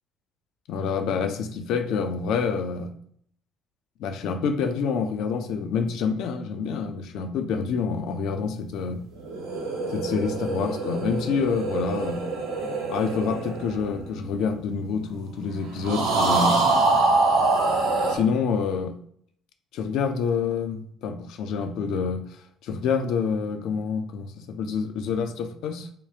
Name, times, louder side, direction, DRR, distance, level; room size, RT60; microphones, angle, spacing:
voice 1, 0.7-2.9 4.0-9.0 9.9-12.2 12.9-16.6 18.1-18.9 19.7-22.2 22.6-25.9, left 5 dB, 60° left, 0.4 m, -27 dB
sound 1, 9.2-14.8 15.8-18.2, right 3 dB, 75° right, 0.9 m, -25 dB
3.4 x 2.3 x 2.8 m
figure-of-eight pair, 55°, 0 cm